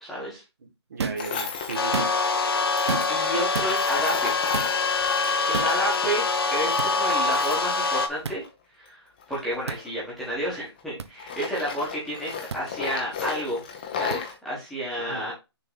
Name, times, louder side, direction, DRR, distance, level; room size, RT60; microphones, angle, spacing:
voice 1, 0.0-0.4 3.1-4.4 5.5-8.4 8.8-9.0 9.3-13.6 14.0-15.3, equal, ahead, -8 dB, 1.4 m, -30 dB
voice 2, 0.6-2.1 15.0-15.3, right 4 dB, 40° right, 4 dB, 1.4 m, -37 dB
sound 1, 1.0-1.3 1.8-2.4 2.9-3.2 3.5-3.7 4.5-4.8 5.5-5.8 6.8-6.9 8.2-8.4 9.7-9.8 11.0-11.1 12.5-12.6 14.1-14.2, right 5 dB, 80° right, 0.8 m, -31 dB
Tools, 1.2-1.8 2.7-6.0 6.3-8.5 9.2-10.8 11.2-14.4, left 6 dB, 20° left, 0.9 m, -35 dB
sound 2, 1.7-8.1, left 4 dB, 60° left, 1.2 m, -24 dB
6.6 x 3.8 x 4.0 m, 0.25 s
hypercardioid pair, 175°, 14 cm